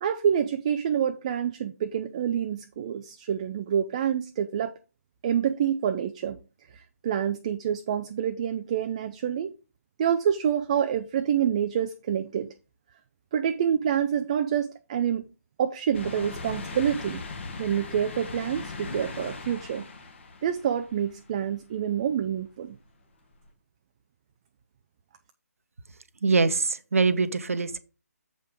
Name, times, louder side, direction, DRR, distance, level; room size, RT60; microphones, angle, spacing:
voice 1, 0.0-4.7 5.2-6.4 6.7-9.5 10.0-12.5 13.3-15.2 15.6-17.2 17.6-19.9 20.4-22.8, right 8 dB, 25° right, 0.3 m, -27 dB
sound 1, 15.9-21.5 22.0-22.1 23.4-23.5, left 3 dB, 45° left, 1.6 m, -39 dB
voice 2, 26.2-27.8, right 4 dB, 55° right, 0.8 m, -23 dB
7.5 x 5.2 x 4.9 m
figure-of-eight pair, 145°, 9 cm